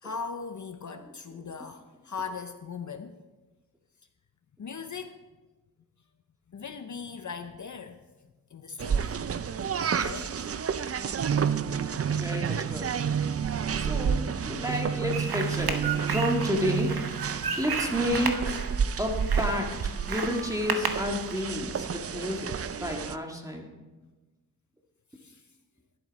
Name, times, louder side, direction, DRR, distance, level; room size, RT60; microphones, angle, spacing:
voice 1, 0.0-3.2 4.6-5.2 6.5-8.0 8.5-9.2 10.0-10.5 13.4-13.6 25.1-25.5, left 5 dB, 50° left, 7 dB, 0.6 m, -39 dB
sound 1, 8.8-23.2, right 7 dB, 40° right, 0.4 m, -30 dB
voice 2, 12.0-13.0 13.7-18.5 19.0-23.7, left 1 dB, 10° right, 1 dB, 1.7 m, -31 dB
sound 2, 15.1-21.4, right 5 dB, 80° right, 1.0 m, -34 dB
11.5 x 11.0 x 4.1 m, 1.2 s
wide cardioid pair, 105°, 37 cm